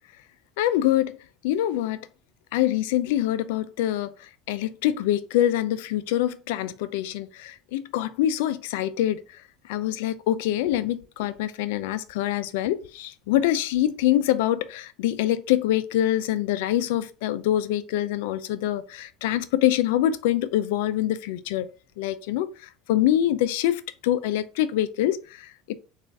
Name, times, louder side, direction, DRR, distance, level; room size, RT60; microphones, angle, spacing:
voice 1, 0.6-1.2 1.4-2.0 2.5-4.1 4.5-9.2 9.7-21.7 22.0-25.7, left 12 dB, 80° left, 0.3 m, -25 dB
3.7 x 2.4 x 3.4 m
supercardioid pair, 95°, 0 cm